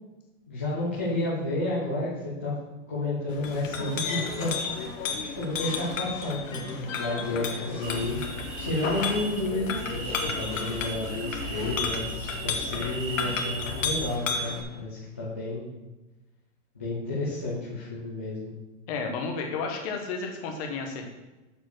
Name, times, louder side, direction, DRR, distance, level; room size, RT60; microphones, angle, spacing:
voice 1, 0.5-2.5 2.9-8.2 8.6-15.6 16.7-18.5, left 2 dB, 10° left, -9 dB, 0.3 m, -31 dB
Chink clink, 3.3-14.6, left 5 dB, 80° left, 1.4 m, -33 dB
sound 1, 7.8-14.2, right 3 dB, 25° right, 0.8 m, -37 dB
voice 2, 18.9-21.1, left 4 dB, 30° left, 2 dB, 1.1 m, -32 dB
7.0 x 4.7 x 6.1 m, 1.1 s
supercardioid pair, 175°, 38 cm